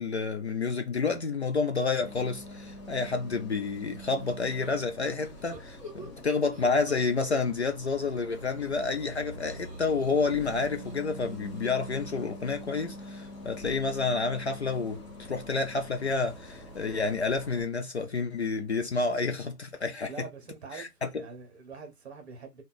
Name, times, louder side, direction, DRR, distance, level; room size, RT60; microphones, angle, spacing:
voice 1, 0.0-20.1 20.7-21.2, left 4 dB, 45° left, 0.5 m, -29 dB
Bus, 2.0-17.6, equal, 20° left, 0.9 m, -44 dB
sound 1, 4.2-7.7 8.0-12.5, equal, 10° right, 0.8 m, -50 dB
voice 2, 20.1-22.6, right 5 dB, 40° right, 1.3 m, -44 dB
3.4 x 2.5 x 3.9 m
figure-of-eight pair, 145°, 49 cm